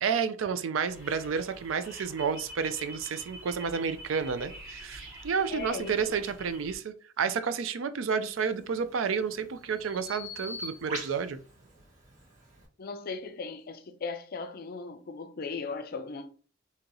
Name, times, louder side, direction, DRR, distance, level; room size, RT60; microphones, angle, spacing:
voice 1, 0.0-11.4, right 6 dB, 80° right, 0.4 m, -30 dB
sound 1, 0.8-6.8, right 1 dB, 15° right, 1.6 m, -47 dB
voice 2, 5.5-6.0 12.8-16.3, left 4 dB, 50° left, 0.5 m, -37 dB
Bird vocalization bird call bird song, 8.4-12.7, equal, 40° right, 1.8 m, -43 dB
3.7 x 2.8 x 2.9 m
head